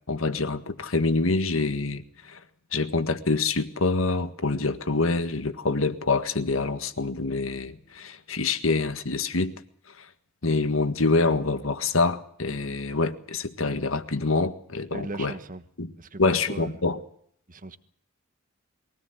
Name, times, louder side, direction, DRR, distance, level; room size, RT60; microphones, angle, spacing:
voice 1, 0.1-2.4 2.7-9.5 10.4-15.3 15.8-15.9 16.2-17.0, left 3 dB, 75° left, 1.7 m, -26 dB
voice 2, 14.9-15.6 16.0-16.7 17.5-17.8, right 2 dB, 40° right, 1.4 m, -38 dB
23.0 x 17.5 x 8.0 m
head